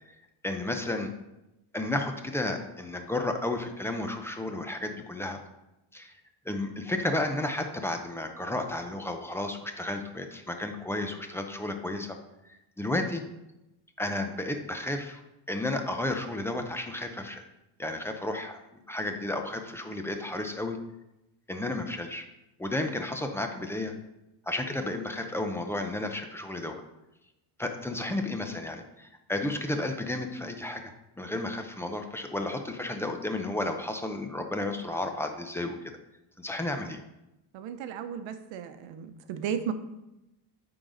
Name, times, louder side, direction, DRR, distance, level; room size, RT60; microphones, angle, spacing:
voice 1, 0.4-1.1 1.7-5.4 5.9-6.1 6.5-12.2 12.5-13.2 14.0-15.2 15.5-17.4 17.8-18.6 18.9-20.8 21.5-22.3 22.6-23.9 24.5-26.8 27.6-36.0 36.4-37.0, left 2 dB, 5° left, 5 dB, 0.4 m, -32 dB
voice 2, 37.5-39.7, right 8 dB, 75° right, 9 dB, 0.9 m, -35 dB
8.9 x 3.9 x 5.0 m, 0.93 s
cardioid pair, 155°, 47 cm